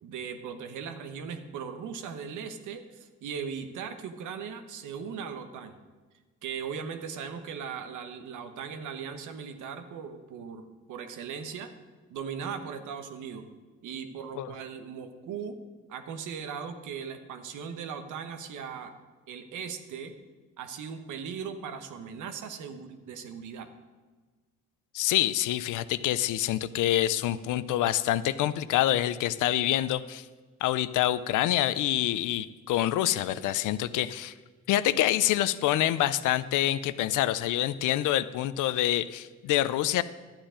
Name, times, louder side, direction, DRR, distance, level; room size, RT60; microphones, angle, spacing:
voice 1, 0.0-5.8 6.4-11.7 12.1-13.5 13.8-15.6 15.9-18.9 19.3-20.1 20.6-23.7, right 6 dB, 80° right, 8 dB, 1.1 m, -38 dB
voice 2, 24.9-30.2 30.6-34.3 34.7-40.0, left 13 dB, 85° left, 15 dB, 0.6 m, -26 dB
12.0 x 8.9 x 5.1 m, 1.3 s
cardioid pair, 90°, 30 cm